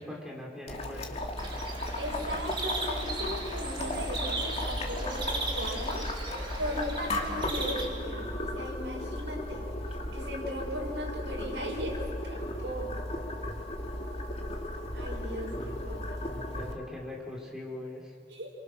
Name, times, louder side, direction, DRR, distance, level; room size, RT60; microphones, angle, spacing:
voice 1, 0.0-1.3 15.4-18.1, left 1 dB, 5° right, -2 dB, 4.2 m, -42 dB
Boiling, 0.7-16.7, left 1 dB, 35° left, 2.4 m, -35 dB
sound 1, 1.4-7.9, right 2 dB, 30° right, 3.3 m, -37 dB
voice 2, 2.0-6.1 6.6-9.7 10.1-12.9 14.9-16.3 18.3-18.5, equal, 75° right, -2 dB, 6.2 m, -37 dB
28.5 x 24.5 x 6.3 m, 2.2 s
head